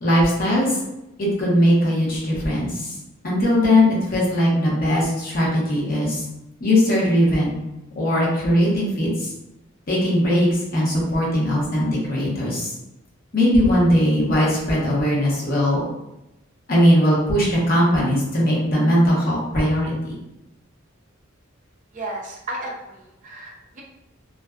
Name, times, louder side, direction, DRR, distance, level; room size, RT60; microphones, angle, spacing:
voice 1, 0.0-0.8 1.2-2.9 3.2-6.2 6.6-7.6 8.0-9.3 9.9-12.7 13.3-15.8 16.7-20.1, equal, 45° left, -6 dB, 0.9 m, -19 dB
voice 2, 21.9-23.8, right 1 dB, 40° right, -2 dB, 0.5 m, -34 dB
2.5 x 2.2 x 2.3 m, 0.90 s
head